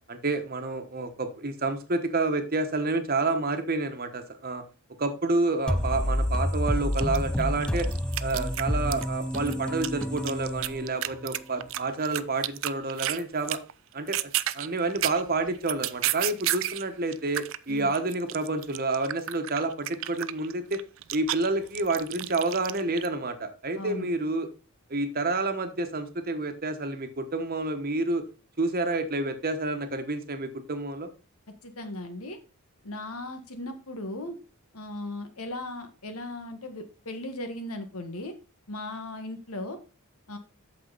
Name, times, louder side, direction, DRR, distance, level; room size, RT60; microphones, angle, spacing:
voice 1, 0.1-4.6 5.0-7.9 8.2-13.6 13.9-20.8 21.1-24.5 24.9-28.2 28.6-31.1, right 2 dB, 45° right, 7 dB, 1.2 m, -29 dB
sound 1, 5.7-11.3, equal, 5° left, 0.4 m, -29 dB
sound 2, 6.5-6.6 6.9-9.0 9.3-13.2 13.5-13.7 14.0-16.9 17.1-23.1, right 14 dB, 60° right, 0.4 m, -31 dB
voice 2, 23.8-24.1 31.6-32.4 32.8-34.4 34.7-38.3 38.7-39.8 40.3-40.4, left 1 dB, 85° left, 6 dB, 1.7 m, -37 dB
8.4 x 6.7 x 4.0 m, 0.32 s
head